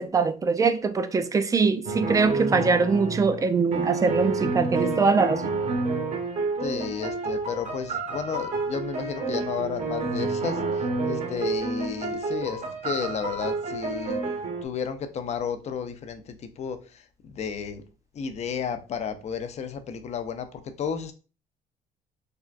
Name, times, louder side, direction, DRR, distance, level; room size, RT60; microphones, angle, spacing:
voice 1, 0.0-5.4, right 4 dB, 20° right, 0.3 m, -22 dB
sound 1, 1.9-14.7, right 3 dB, 45° right, 0.7 m, -29 dB
voice 2, 6.6-14.2 14.6-17.8 18.1-21.1, left 7 dB, 40° left, 0.5 m, -33 dB
3.5 x 2.2 x 2.4 m
cardioid pair, 110°, 17 cm